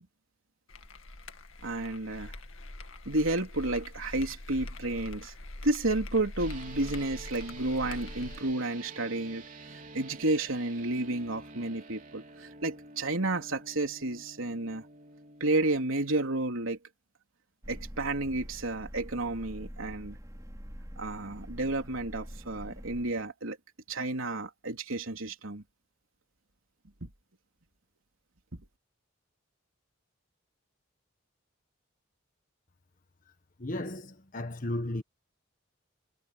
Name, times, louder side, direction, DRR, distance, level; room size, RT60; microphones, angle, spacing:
sound 1, 0.7-8.5, left 1 dB, 85° left, 2.0 m, -43 dB
voice 1, 1.6-2.3 3.1-5.3 5.6-9.4 9.7-14.8 15.4-16.8 17.7-20.2 21.0-23.6 23.9-25.6 27.0-27.1, right 2 dB, 85° right, 3.6 m, -31 dB
sound 2, 6.4-15.8, right 3 dB, 40° right, 4.0 m, -49 dB
sound 3, 17.6-23.1, equal, 15° right, 3.9 m, -45 dB
voice 2, 33.6-35.0, left 1 dB, 40° left, 1.3 m, -34 dB
head